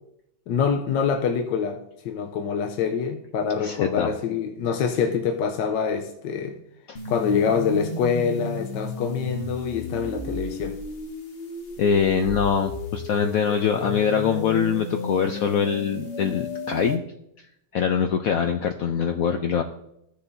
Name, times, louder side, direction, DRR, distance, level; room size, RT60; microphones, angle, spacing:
voice 1, 0.5-1.8 2.0-6.6 7.1-10.8, left 6 dB, 70° left, 5 dB, 1.2 m, -25 dB
voice 2, 3.6-4.1 6.9-7.0 11.8-17.0 17.7-19.6, left 7 dB, 90° left, 6 dB, 0.7 m, -23 dB
sound 1, 6.9-16.9, left 2 dB, 40° left, 0.9 m, -33 dB
15.5 x 6.8 x 2.6 m, 0.79 s
omnidirectional pair, 2.1 m